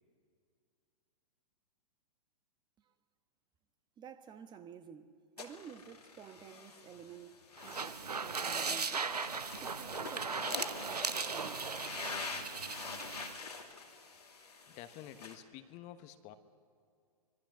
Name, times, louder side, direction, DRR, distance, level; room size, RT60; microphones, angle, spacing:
voice 1, 4.0-9.1 9.6-11.7, right 8 dB, 20° right, 1.2 m, -52 dB
sound 1, 5.4-15.4, left 4 dB, 85° left, 2.5 m, -46 dB
sound 2, 7.6-13.4, right 5 dB, 90° right, 0.9 m, -38 dB
voice 2, 14.7-16.3, left 11 dB, 35° left, 1.2 m, -50 dB
25.0 x 22.0 x 6.2 m
hypercardioid pair, 110°, 19 cm